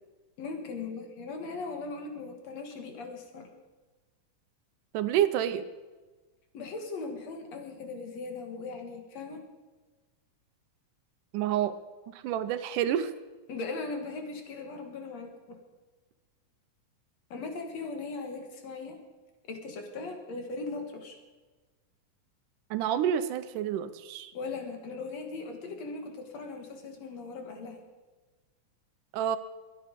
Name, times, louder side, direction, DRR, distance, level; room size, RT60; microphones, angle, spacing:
voice 1, 0.4-3.5 6.5-9.4 13.5-15.3 17.3-19.0 19.5-21.2 24.3-27.8, left 3 dB, 60° left, 4 dB, 2.5 m, -39 dB
voice 2, 4.9-5.6 11.3-11.7 12.1-13.1 22.7-24.3 29.1-29.4, right 10 dB, 80° right, 11 dB, 2.2 m, -28 dB
22.5 x 8.6 x 5.2 m, 1.3 s
omnidirectional pair, 3.7 m